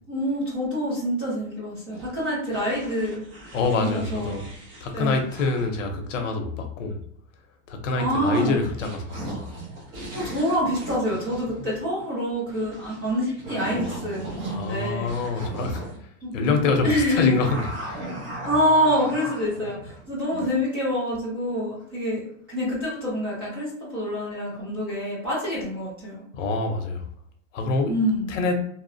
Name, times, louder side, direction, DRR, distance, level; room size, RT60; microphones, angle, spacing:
voice 1, 0.1-3.2 3.8-4.4 4.9-5.2 6.1-6.3 8.0-8.6 10.1-15.1 16.2-16.6 16.8-17.5 17.9-26.3 27.9-28.4, equal, 20° right, -8 dB, 0.4 m, -26 dB
sound 1, 1.9-5.9 8.1-16.0 17.4-20.6, right 1 dB, 50° right, 0.8 m, -38 dB
voice 2, 3.5-4.5 4.8-7.0 7.7-9.5 14.5-18.2 26.3-27.0 27.5-27.9 28.3-28.6, left 3 dB, 70° left, 5 dB, 0.7 m, -26 dB
2.7 x 2.0 x 2.5 m, 0.66 s
supercardioid pair, 175°, 39 cm